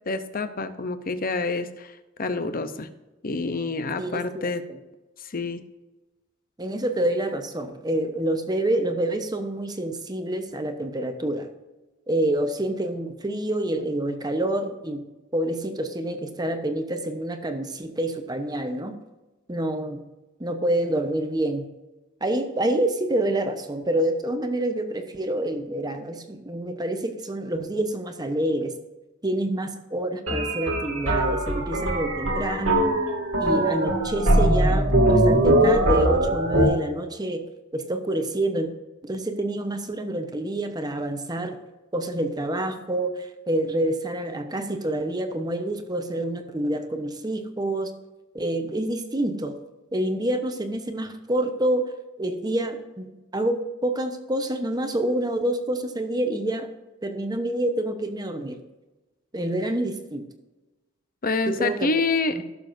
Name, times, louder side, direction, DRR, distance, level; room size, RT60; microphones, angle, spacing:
voice 1, 0.1-2.9 3.2-4.6 5.2-5.6 61.2-62.4, left 3 dB, 45° left, 11 dB, 0.8 m, -27 dB
voice 2, 4.0-4.8 6.6-11.5 12.1-15.0 15.3-19.0 19.5-20.0 20.4-21.7 22.2-28.7 29.2-32.9 33.4-37.4 37.7-38.7 39.0-41.6 41.9-47.9 48.3-49.5 49.9-51.8 52.2-53.1 53.3-56.7 57.0-58.6 59.3-60.2 61.5-61.9 62.4-62.5, right 1 dB, 20° right, 6 dB, 1.0 m, -27 dB
sound 1, 30.3-36.7, right 1 dB, 85° right, 2.2 m, -21 dB
16.0 x 7.0 x 2.7 m, 1.1 s
head